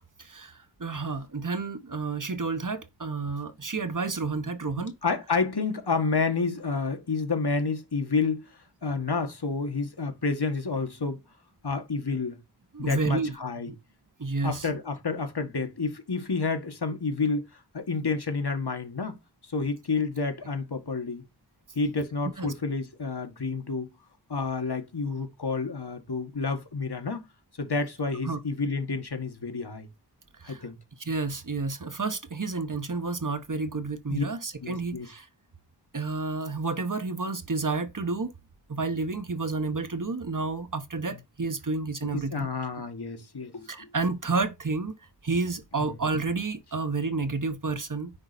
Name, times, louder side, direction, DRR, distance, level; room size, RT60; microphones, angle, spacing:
voice 1, 0.8-4.9 12.7-13.3 13.7-13.8 14.2-14.7 22.4-22.5 28.2-28.4 30.4-30.6 31.1-35.2 35.9-38.3 38.7-42.5 43.7-44.9 45.2-48.1, right 3 dB, 50° right, 1.2 m, -30 dB
voice 2, 4.8-8.5 8.8-11.2 11.6-12.4 12.8-13.7 14.4-17.4 17.7-19.2 19.5-21.2 21.7-23.9 24.3-27.2 27.6-29.9 30.4-30.8 34.1-34.2 34.6-35.1 42.1-43.9 45.8-46.0, left 4 dB, 65° left, 1.7 m, -29 dB
9.8 x 4.8 x 4.3 m
wide cardioid pair, 65°, 42 cm